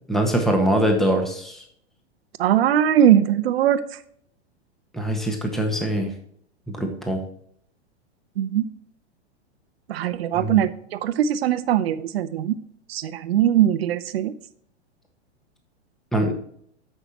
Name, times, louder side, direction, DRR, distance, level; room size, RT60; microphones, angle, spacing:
voice 1, 0.1-1.6 4.9-6.1 6.7-7.2 10.3-10.6 16.1-16.3, right 1 dB, ahead, 3 dB, 1.4 m, -23 dB
voice 2, 2.4-4.0 8.4-8.7 9.9-12.6 12.9-14.3, right 10 dB, 65° right, 13 dB, 0.8 m, -21 dB
14.5 x 5.8 x 2.9 m, 0.66 s
hypercardioid pair, 105°, 33 cm